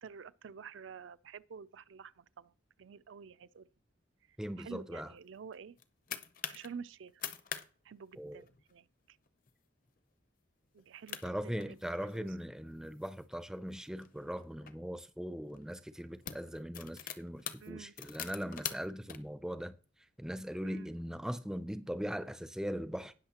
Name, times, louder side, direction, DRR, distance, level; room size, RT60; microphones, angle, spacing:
voice 1, 0.0-2.5 2.8-3.7 4.3-5.8 6.5-7.2 7.8-9.2 10.7-12.4 17.6-18.0 20.6-20.9, right 6 dB, 75° right, 0.4 m, -50 dB
voice 2, 4.4-5.1 8.2-8.4 11.2-19.8 20.2-23.1, equal, 5° right, 0.4 m, -40 dB
sound 1, 5.5-6.7 7.1-7.7 7.9-8.0 8.4-8.7 9.3-9.5 10.0-10.1 10.8-10.9 11.1-12.3 12.9-14.7 15.5-15.7 16.0-19.2, left 8 dB, 45° left, 0.6 m, -44 dB
18.5 x 6.4 x 2.9 m
head